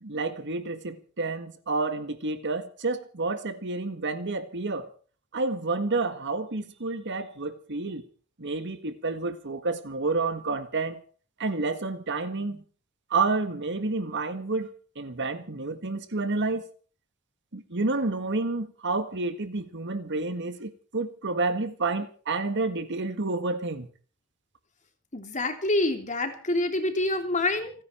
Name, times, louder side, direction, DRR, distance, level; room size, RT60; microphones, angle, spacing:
voice 1, 0.0-4.9 5.3-8.0 8.4-11.0 11.4-12.6 13.1-16.6 17.5-23.9, right 3 dB, 55° right, 1.8 m, -29 dB
voice 2, 25.1-27.7, left 2 dB, 35° left, 3.1 m, -27 dB
29.5 x 10.0 x 4.5 m
head